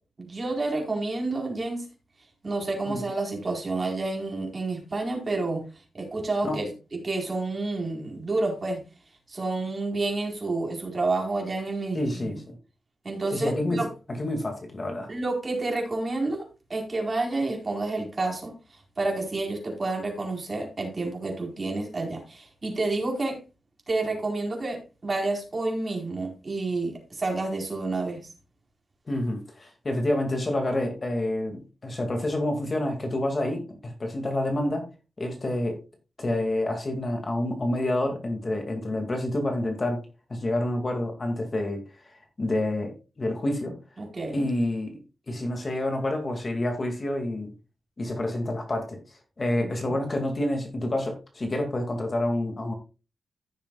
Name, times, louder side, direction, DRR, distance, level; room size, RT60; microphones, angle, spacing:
voice 1, 0.2-1.9 2.4-5.7 5.9-6.7 7.0-8.8 9.3-12.4 13.0-13.9 15.1-18.6 19.0-23.4 23.9-28.3 44.0-44.5, right 2 dB, 30° right, 4.2 m, -29 dB
voice 2, 11.9-12.6 13.3-15.1 29.1-34.9 35.2-35.8 36.2-40.0 40.3-41.8 42.4-43.8 44.3-45.0 45.3-47.5 48.0-49.0 49.4-52.7, left 1 dB, 35° left, 2.2 m, -28 dB
15.0 x 7.0 x 2.3 m
wide cardioid pair, 115°, 0 cm